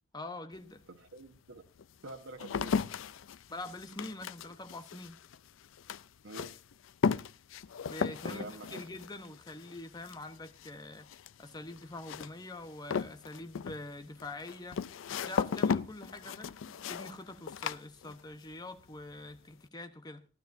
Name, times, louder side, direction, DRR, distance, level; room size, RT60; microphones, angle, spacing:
voice 1, 0.1-0.8 3.5-5.2 7.9-11.1 11.4-14.8 15.2-20.2, left 2 dB, 20° left, 1.0 m, -45 dB
sound 1, 0.6-0.7 1.3-18.5 18.8-19.4, left 6 dB, 80° left, 0.4 m, -36 dB
voice 2, 0.9-1.6 2.0-2.8 6.2-6.6 8.2-8.8, right 2 dB, 90° right, 1.2 m, -46 dB
15.0 x 12.0 x 2.6 m
head